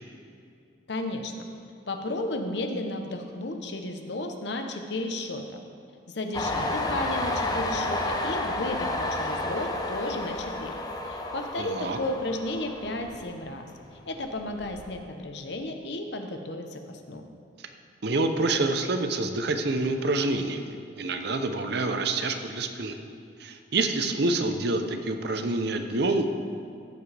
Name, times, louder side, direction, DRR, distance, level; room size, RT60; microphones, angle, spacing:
voice 1, 0.9-1.5 1.9-5.6 6.1-10.8 11.1-13.7 14.1-17.2, left 1 dB, 60° left, 5 dB, 0.8 m, -33 dB
Train, 6.3-13.8 14.1-15.0, left 2 dB, 20° left, 0.6 m, -31 dB
voice 2, 11.6-12.0 18.0-23.0 23.4-26.3, right 2 dB, 55° right, 7 dB, 0.7 m, -27 dB
15.5 x 7.3 x 3.4 m, 2.4 s
head